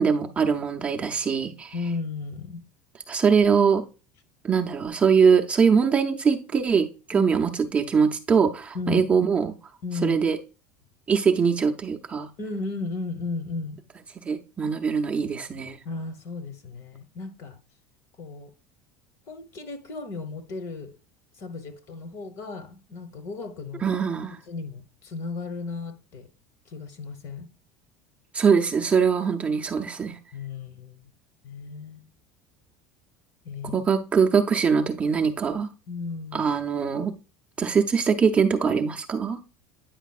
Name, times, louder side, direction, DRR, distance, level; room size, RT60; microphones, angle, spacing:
voice 1, 0.0-1.7 3.1-3.8 4.4-9.5 10.0-10.4 11.1-12.3 14.2-15.8 23.8-24.4 28.3-30.2 33.7-35.7 36.3-37.1 37.6-39.4, right 6 dB, 20° right, 0.6 m, -22 dB
voice 2, 1.7-2.6 7.1-7.3 8.7-9.0 9.8-10.2 12.4-13.8 15.8-17.6 18.2-18.5 19.3-20.9 21.4-23.8 24.5-26.3 26.7-27.5 30.3-31.1 31.4-32.1 33.4-33.8 35.9-36.5, left 3 dB, 45° left, 1.2 m, -34 dB
9.1 x 5.1 x 2.4 m
cardioid pair, 150°, 7 cm